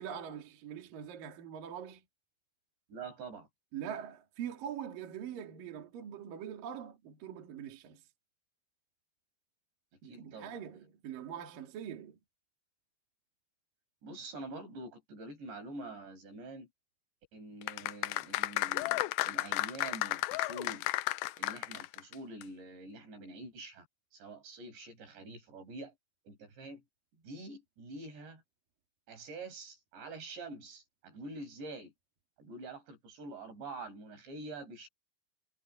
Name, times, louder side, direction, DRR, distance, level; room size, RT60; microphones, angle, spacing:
voice 1, 0.0-2.0 3.7-8.0 10.0-12.2, right 9 dB, 55° right, 3.8 m, -43 dB
voice 2, 2.9-3.5 10.0-10.6 14.0-16.7 17.3-20.9 21.4-23.9 24.1-25.9 26.2-26.8 27.2-28.4 29.1-31.9 32.4-34.9, right 2 dB, 80° right, 8.5 m, -46 dB
sound 1, 17.6-22.1 22.4-22.5, left 18 dB, 80° left, 2.2 m, -33 dB
omnidirectional pair, 4.9 m